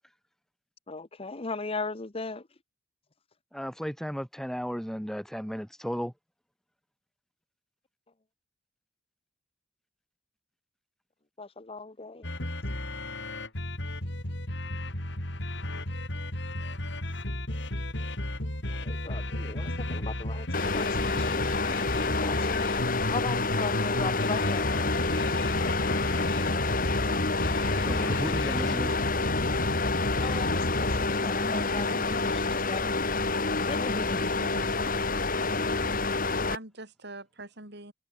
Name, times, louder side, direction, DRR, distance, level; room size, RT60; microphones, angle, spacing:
voice 1, 0.9-2.5 11.4-12.3 18.8-21.9 22.2-25.0 30.2-33.1 33.7-34.3, left 3 dB, 30° left, 1.0 m, -38 dB
voice 2, 3.5-6.1 21.1-21.2 27.8-29.0, equal, ahead, 4.7 m, -34 dB
sound 1, 12.2-31.1, left 1 dB, 65° left, 4.9 m, -33 dB
sound 2, 20.5-36.6, left 3 dB, 45° left, 3.8 m, -28 dB
voice 3, 31.5-32.1 34.2-34.8 36.2-37.9, right 2 dB, 60° right, 8.0 m, -44 dB
head